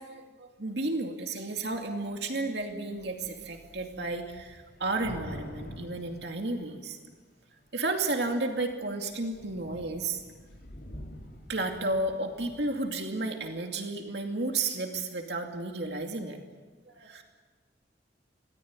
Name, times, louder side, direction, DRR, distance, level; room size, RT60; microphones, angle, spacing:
voice 1, 0.0-7.0 7.7-10.2 11.5-16.4 16.9-17.2, right 2 dB, 65° right, 3 dB, 2.5 m, -32 dB
Thunder / Rain, 2.6-2.7 3.0-7.1 7.8-8.3 8.7-8.8 9.1-12.9, equal, 55° left, 4.5 m, -47 dB
25.5 x 18.0 x 9.7 m, 1.4 s
head